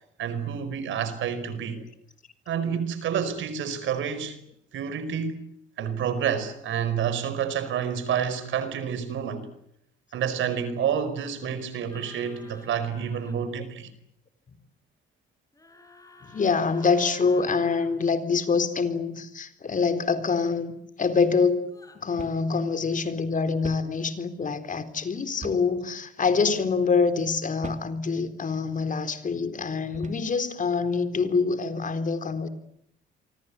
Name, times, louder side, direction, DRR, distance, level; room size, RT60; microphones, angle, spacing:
voice 1, 0.2-1.8 2.5-4.4 4.7-5.4 5.8-9.5 10.1-13.9, right 8 dB, 75° right, 4.9 m, -29 dB
sound 1, 11.9-13.3 15.5-18.0 21.6-22.0, left 2 dB, 15° left, 7.0 m, -52 dB
voice 2, 16.2-21.7 22.0-32.5, left 5 dB, 40° left, 4.0 m, -25 dB
sound 2, 22.2-22.5 22.8-22.9 23.6-24.0 25.4-25.8 26.5-26.7 27.6-28.0 28.7-28.9 29.9-30.3, right 5 dB, 40° right, 2.7 m, -42 dB
28.0 x 24.5 x 8.5 m
cardioid pair, 90°, 20 cm